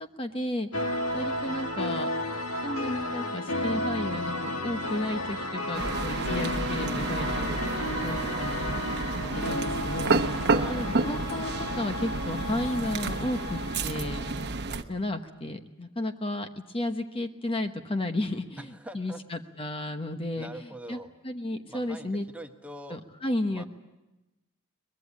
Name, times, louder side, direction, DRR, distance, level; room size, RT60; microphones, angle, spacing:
voice 1, 0.2-0.7 1.1-2.1 2.6-7.6 8.0-8.6 9.4-10.2 10.7-14.3 14.9-16.5 16.7-18.6 18.9-20.5 20.9-21.0 21.2-22.2 22.9-23.7, left 1 dB, 25° left, 7 dB, 1.0 m, -33 dB
sound 1, 0.7-14.5, left 1 dB, 70° left, 2.0 m, -33 dB
sound 2, 5.7-14.8, right 3 dB, 50° right, 1.1 m, -30 dB
voice 2, 10.5-10.9 18.6-19.2 20.3-21.1 21.7-23.0 23.5-23.7, right 1 dB, 5° right, 5 dB, 1.2 m, -43 dB
23.5 x 21.0 x 8.5 m, 1.0 s
head